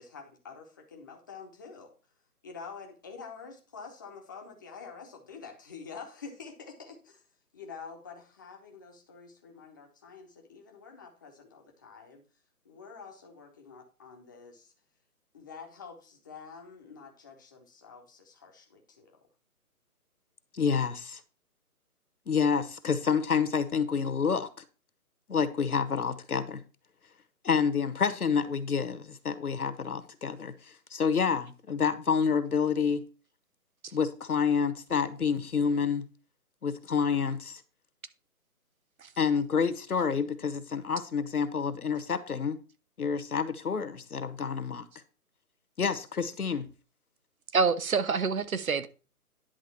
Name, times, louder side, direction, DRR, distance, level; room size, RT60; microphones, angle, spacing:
voice 1, 0.0-1.9 2.4-7.2 7.5-12.2 12.6-14.7 15.3-19.2, left 5 dB, 15° left, 0.8 m, -47 dB
voice 2, 20.5-21.2 22.3-24.5 25.3-26.6 27.4-30.5 30.9-33.0 33.9-36.1 36.6-37.6 39.2-42.6 43.0-44.8 45.8-46.7, left 6 dB, 70° left, 1.3 m, -28 dB
voice 3, 47.5-48.9, right 5 dB, 65° right, 1.0 m, -26 dB
10.5 x 3.6 x 6.9 m
figure-of-eight pair, 145°, 46 cm